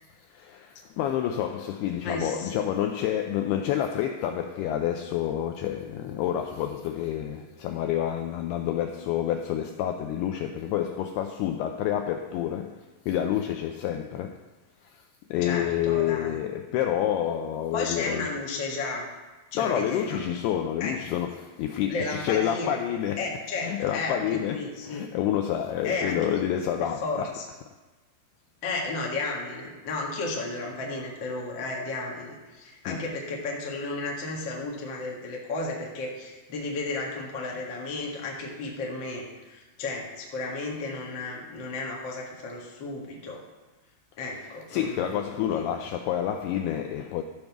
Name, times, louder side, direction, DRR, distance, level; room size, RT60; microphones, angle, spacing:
voice 1, 0.3-14.4 14.8-15.0 15.3-18.3 19.5-27.6 32.9-33.1 40.7-40.8 44.3-47.2, left 10 dB, 85° left, 2.3 m, -29 dB
voice 2, 2.0-2.6 15.4-16.4 17.7-19.1 19.5-20.2 20.8-20.9 21.9-22.8 23.2-25.0 25.8-26.4 27.0-27.4 28.6-43.4 44.2-45.2 45.5-45.7, left 3 dB, 65° left, 1.1 m, -33 dB
13.0 x 5.3 x 5.9 m
omnidirectional pair, 5.1 m